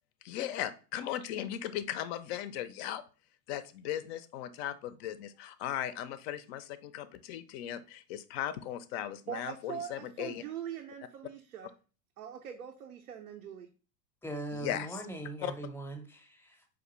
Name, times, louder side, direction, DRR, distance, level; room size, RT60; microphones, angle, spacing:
voice 1, 0.2-3.0 3.5-10.4 14.5-14.9 15.4-15.5, left 11 dB, 50° left, 0.4 m, -37 dB
voice 2, 9.3-11.7 12.2-13.7, right 9 dB, 80° right, 0.6 m, -42 dB
voice 3, 14.2-16.0 16.3-16.6, right 2 dB, 5° left, 0.6 m, -40 dB
4.8 x 2.5 x 3.0 m
figure-of-eight pair, 80°, 43 cm